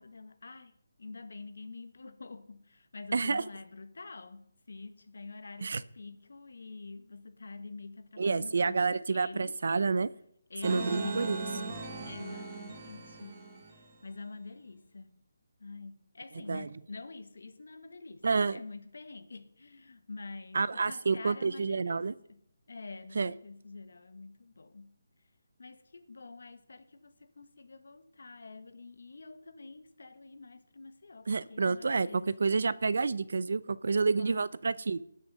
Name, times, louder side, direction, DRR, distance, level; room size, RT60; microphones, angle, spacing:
voice 1, 0.0-9.5 10.5-13.4 13.7-15.2 15.6-22.4 22.7-24.9 25.6-32.3 34.2-34.5, left 3 dB, 70° left, 1.5 m, -47 dB
voice 2, 3.1-3.4 5.6-5.8 8.2-10.1 10.6-11.4 16.5-16.7 18.2-18.6 20.5-22.1 23.1-23.3 31.3-35.0, right 4 dB, 60° right, 0.6 m, -29 dB
sound 1, 10.6-13.9, right 3 dB, 20° right, 1.6 m, -38 dB
19.0 x 6.5 x 5.6 m
hypercardioid pair, 170°, 0 cm